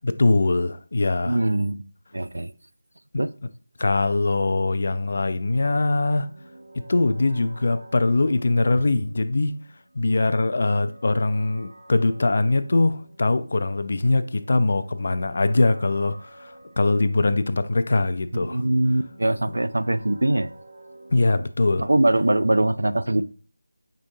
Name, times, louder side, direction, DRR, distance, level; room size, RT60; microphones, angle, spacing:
voice 1, 0.0-1.4 3.8-6.3 6.9-9.5 10.0-18.6 19.5-19.6 21.1-21.9, left 2 dB, 50° left, 0.3 m, -22 dB
voice 2, 1.3-1.8 2.1-2.5 3.2-3.3 18.3-20.5 21.8-23.2, right 1 dB, 80° right, 0.3 m, -22 dB
sound 1, 5.5-21.3, right 1 dB, 50° right, 0.8 m, -49 dB
5.0 x 3.6 x 2.6 m
figure-of-eight pair, 170°, 0 cm